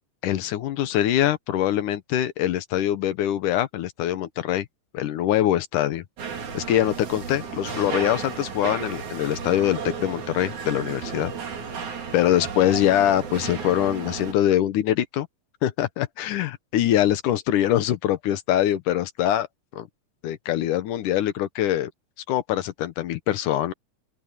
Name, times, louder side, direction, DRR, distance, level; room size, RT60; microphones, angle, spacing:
voice 1, 0.2-4.7 4.9-6.0 6.5-11.3 12.1-15.3 15.6-19.5 19.7-19.9 20.2-21.9 22.3-23.7, left 12 dB, 75° left, 2.4 m, -23 dB
sound 1, 6.2-14.3, right 6 dB, 60° right, 4.5 m, -33 dB
open air
omnidirectional pair, 4.0 m